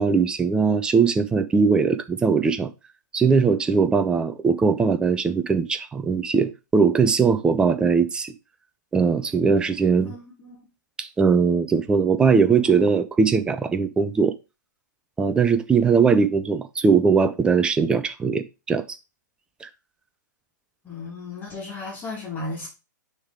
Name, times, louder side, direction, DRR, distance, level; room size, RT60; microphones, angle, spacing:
voice 1, 0.0-2.7 3.1-8.3 8.9-10.1 11.0-14.3 15.2-18.8 19.6-19.7, right 5 dB, 10° right, 0.5 m, -20 dB
voice 2, 10.0-10.7 20.8-22.7, left 3 dB, 20° left, 2.2 m, -35 dB
6.3 x 3.5 x 4.7 m
figure-of-eight pair, 115°, 10 cm